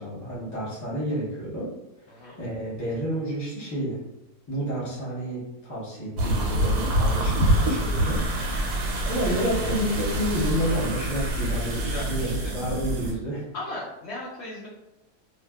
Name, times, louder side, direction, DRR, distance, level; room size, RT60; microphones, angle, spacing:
voice 1, 0.0-1.7 2.0-4.0 4.5-8.2 9.0-13.5, equal, 20° left, -8 dB, 0.5 m, -30 dB
sound 1, 6.2-13.1, right 1 dB, 85° right, 1.1 m, -26 dB
voice 2, 11.8-12.4 13.5-14.7, left 1 dB, 80° left, -6 dB, 0.6 m, -36 dB
2.6 x 2.2 x 2.2 m, 0.93 s
omnidirectional pair, 1.7 m